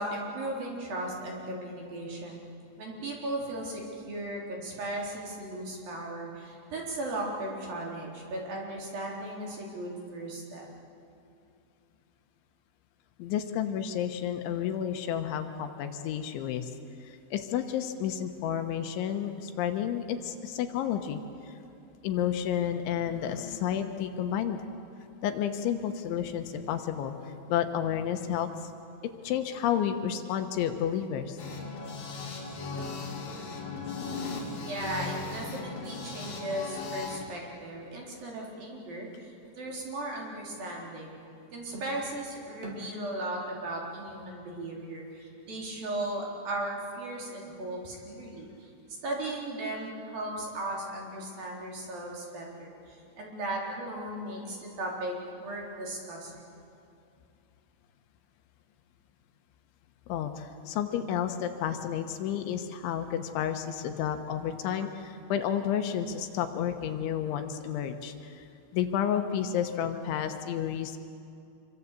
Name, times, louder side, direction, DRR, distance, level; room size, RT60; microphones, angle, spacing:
voice 1, 0.0-2.4 2.8-10.6 34.6-41.2 41.5-48.7 49.0-56.5, right 1 dB, 50° right, -2 dB, 5.5 m, -36 dB
voice 2, 13.2-16.7 17.0-21.6 22.0-24.6 25.2-27.1 27.5-28.7 29.2-31.4 60.1-68.5 68.7-71.0, left 9 dB, 75° left, 7 dB, 3.4 m, -31 dB
sound 1, 31.4-37.2, left 4 dB, 50° left, 4.2 m, -37 dB
26.5 x 23.5 x 8.4 m, 2.6 s
omnidirectional pair, 5.6 m